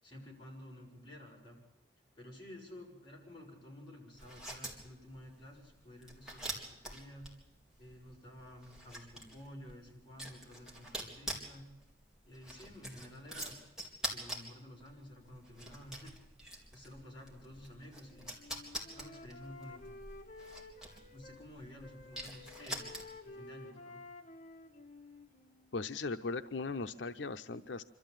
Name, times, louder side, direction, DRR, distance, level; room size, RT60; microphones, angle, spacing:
voice 1, 0.0-1.6 2.2-7.3 7.8-11.7 12.2-13.6 14.1-16.1 16.5-18.3 18.9-20.0 21.1-22.8 23.2-24.0, left 1 dB, 30° left, -3 dB, 7.0 m, -52 dB
sound 1, 4.1-23.4, equal, 5° right, 4.0 m, -46 dB
Wind instrument woodwind instrument, 17.9-21.5 21.8-25.8, left 2 dB, 45° left, 1.6 m, -53 dB
voice 2, 25.7-27.8, left 3 dB, 85° left, 9 dB, 0.7 m, -38 dB
26.5 x 13.5 x 9.0 m, 1.0 s
head